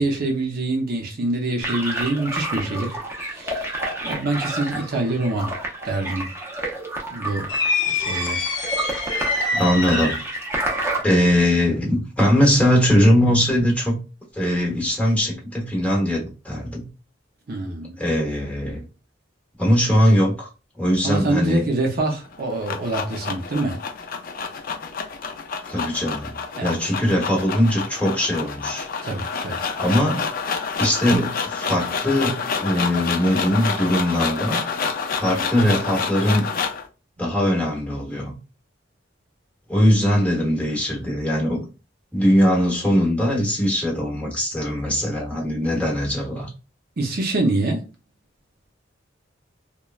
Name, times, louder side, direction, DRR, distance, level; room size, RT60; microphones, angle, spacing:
voice 1, 0.0-3.0 3.3-3.6 4.0-5.5 5.8-6.3 7.1-7.5 7.9-8.4 17.5-18.0 21.0-23.8 26.6-26.8 29.0-29.7 47.0-47.8, right 2 dB, 50° right, 0.6 m, -25 dB
sound 1, 1.6-11.0, right 2 dB, 15° right, 0.6 m, -29 dB
sound 2, 7.5-10.4, left 3 dB, 70° left, 0.8 m, -25 dB
voice 2, 9.5-10.2 11.0-14.0 14.3-16.9 18.0-18.8 19.6-20.5 20.8-21.6 25.7-28.9 29.8-30.2 30.8-34.6 35.1-36.5 37.2-38.4 39.7-41.7 42.1-46.5, equal, 10° left, 0.8 m, -21 dB
sound 3, 22.3-36.9, left 5 dB, 50° left, 0.4 m, -28 dB
3.0 x 2.1 x 2.3 m
head